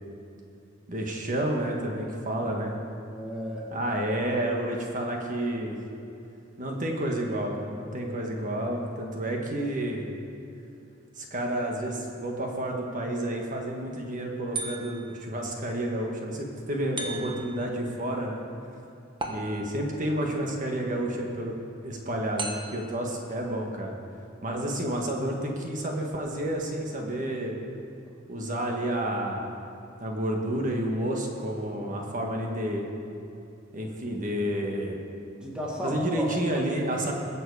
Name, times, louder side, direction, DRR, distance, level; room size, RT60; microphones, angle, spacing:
voice 1, 0.9-2.7 3.7-5.7 6.6-10.0 11.2-18.4 19.3-21.5 21.8-23.9 24.4-27.6 28.3-29.5 30.0-32.9 33.7-35.0 35.8-37.1, right 1 dB, 40° right, 1 dB, 1.6 m, -30 dB
voice 2, 3.1-3.7 35.4-36.3 36.6-37.1, equal, 5° right, -4 dB, 2.2 m, -34 dB
sound 1, 14.5-15.2 17.0-17.6 19.2-19.9 22.4-23.0, right 3 dB, 25° right, 1.2 m, -36 dB
21.0 x 7.9 x 4.9 m, 2.7 s
head